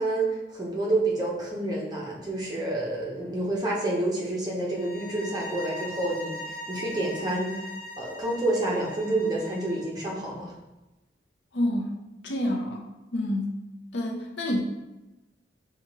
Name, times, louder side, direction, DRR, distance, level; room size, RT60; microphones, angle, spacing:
voice 1, 0.0-7.7 8.0-10.5, right 2 dB, 20° right, -4 dB, 0.8 m, -28 dB
sound 1, 4.7-9.9, equal, 55° left, 0.7 m, -40 dB
voice 2, 11.5-12.0 12.2-13.6 13.9-14.6, left 1 dB, 85° left, 0 dB, 0.7 m, -28 dB
5.6 x 2.4 x 3.1 m, 1.0 s
head